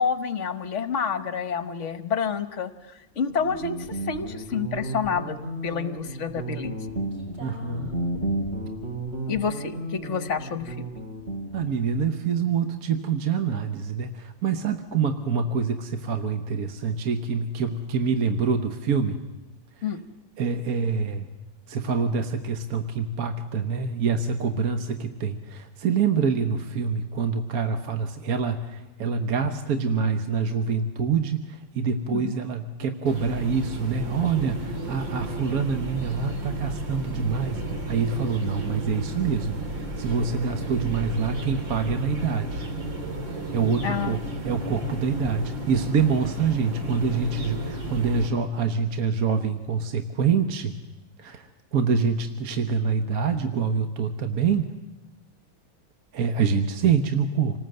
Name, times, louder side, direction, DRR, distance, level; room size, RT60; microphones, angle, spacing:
voice 1, 0.0-5.4 5.6-6.8 9.3-10.8 19.8-20.0 32.1-32.3 43.8-44.2, left 6 dB, 45° left, 11 dB, 1.2 m, -28 dB
Guitar, 3.3-11.8, right 1 dB, 35° right, 5.0 m, -33 dB
voice 2, 7.4-7.9 11.5-19.2 20.4-21.3 21.7-42.7 43.5-44.2 44.4-50.7 51.2-54.7 56.1-57.6, right 5 dB, 55° right, 7 dB, 1.3 m, -26 dB
sound 1, 33.1-48.3, right 1 dB, 75° right, 3.5 m, -33 dB
27.5 x 19.5 x 7.8 m, 1.1 s
omnidirectional pair, 2.1 m